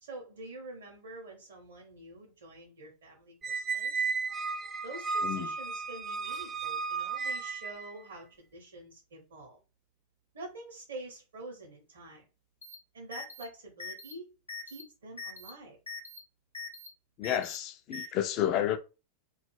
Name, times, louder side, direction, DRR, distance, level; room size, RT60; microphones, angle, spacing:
voice 1, 0.0-4.1 4.8-9.6 10.3-12.2 12.9-14.2 14.7-15.8, right 2 dB, 65° right, 0.7 m, -47 dB
Squeak, 3.4-7.9, right 4 dB, 20° right, 0.4 m, -34 dB
sound 1, 12.6-12.7 13.1-13.4 13.8-14.1 14.5-14.8 15.2-15.5 15.9-16.2 16.5-16.9 17.2-17.6 17.9-18.1, left 5 dB, 80° left, 0.7 m, -41 dB
voice 2, 17.2-18.8, left 11 dB, 40° left, 0.3 m, -30 dB
2.3 x 2.0 x 3.1 m
figure-of-eight pair, 90°, 0 cm